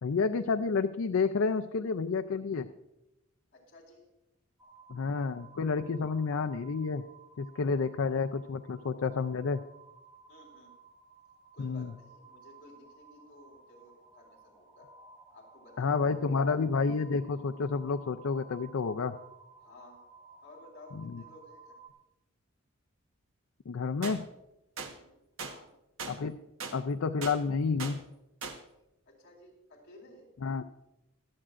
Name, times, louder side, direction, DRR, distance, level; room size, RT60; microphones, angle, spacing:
voice 1, 0.0-2.7 4.9-7.0 7.4-9.6 11.6-11.9 15.8-19.2 21.0-21.2 23.7-24.3 26.1-26.4 26.7-28.0 30.4-30.6, left 4 dB, 75° left, 8 dB, 0.5 m, -30 dB
voice 2, 3.5-4.1 10.3-10.7 11.5-14.9 15.3-16.1 19.6-20.0 20.4-21.8 24.8-25.2 25.4-25.7 29.1-30.3, left 2 dB, 55° left, -1 dB, 4.1 m, -55 dB
sound 1, 4.6-21.9, right 4 dB, 10° right, 1.4 m, -56 dB
sound 2, 24.0-24.2 24.8-24.9 25.4-25.5 26.0-26.2 26.6-26.8 27.2-27.4 27.8-28.0 28.4-28.6, right 5 dB, 70° right, 1.2 m, -38 dB
24.5 x 8.7 x 2.5 m, 0.92 s
head